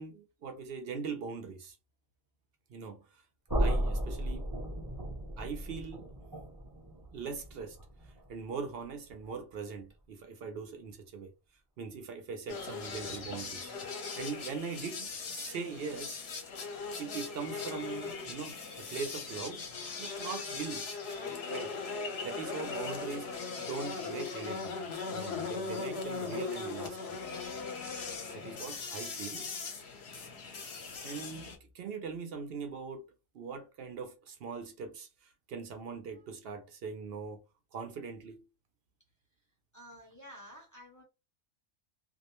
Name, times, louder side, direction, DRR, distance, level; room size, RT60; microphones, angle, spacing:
voice 1, 0.0-1.8 2.7-3.2 3.6-4.5 5.4-6.1 7.1-7.8 8.3-11.3 11.8-16.2 17.0-19.7 20.0-20.9 21.5-21.7 22.2-23.3 23.6-27.2 28.3-29.5 31.0-33.0 33.3-37.4 37.7-38.4, right 5 dB, 65° right, 0.7 m, -41 dB
sound 1, 3.5-9.4, right 1 dB, 25° right, 0.6 m, -35 dB
sound 2, 12.5-31.6, left 4 dB, 65° left, 1.0 m, -39 dB
voice 2, 39.7-41.0, equal, 20° left, 0.6 m, -51 dB
2.4 x 2.0 x 2.9 m
omnidirectional pair, 1.2 m